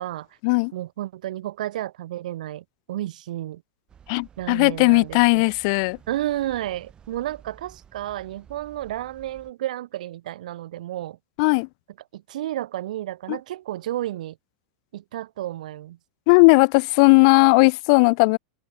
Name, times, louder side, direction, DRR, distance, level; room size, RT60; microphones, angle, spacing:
voice 1, 0.7-3.6 4.4-5.5 6.1-11.2 12.1-14.4 14.9-16.0, right 13 dB, 75° right, 1.5 m, -32 dB
sound 1, 3.9-9.5, right 8 dB, 20° right, 6.6 m, -51 dB
voice 2, 4.1-6.0 11.4-11.7 13.3-13.4 16.3-18.4, left 31 dB, 50° left, 0.4 m, -17 dB
supercardioid pair, 140°, 4 cm